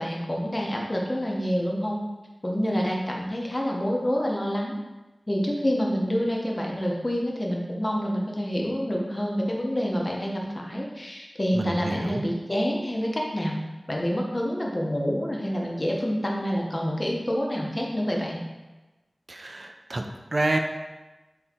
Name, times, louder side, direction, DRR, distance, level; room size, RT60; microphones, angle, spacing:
voice 1, 0.0-2.0 2.4-4.8 5.3-13.6 13.9-18.4, equal, 30° left, -1 dB, 0.7 m, -27 dB
voice 2, 11.5-12.2 19.3-20.1 20.3-20.6, right 2 dB, 50° right, 4 dB, 0.3 m, -28 dB
3.6 x 2.7 x 4.2 m, 1.1 s
wide cardioid pair, 65°, 0 cm